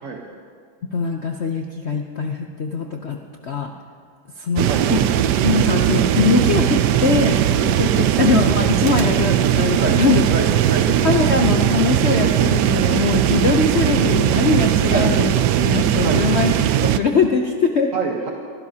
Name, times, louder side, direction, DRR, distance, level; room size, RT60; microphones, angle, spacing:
voice 1, 0.9-3.2 3.4-3.7 4.4-5.1 5.4-7.4 7.6-10.3 11.0-15.3 15.6-17.9, left 5 dB, 85° left, 3 dB, 0.5 m, -21 dB
sound 1, 4.6-17.0, right 11 dB, 70° right, 1.0 m, -18 dB
voice 2, 10.3-10.9 14.9-15.1 16.0-16.3 17.9-18.3, right 5 dB, 45° right, 0 dB, 1.3 m, -26 dB
25.0 x 15.5 x 2.8 m, 2.1 s
omnidirectional pair, 2.2 m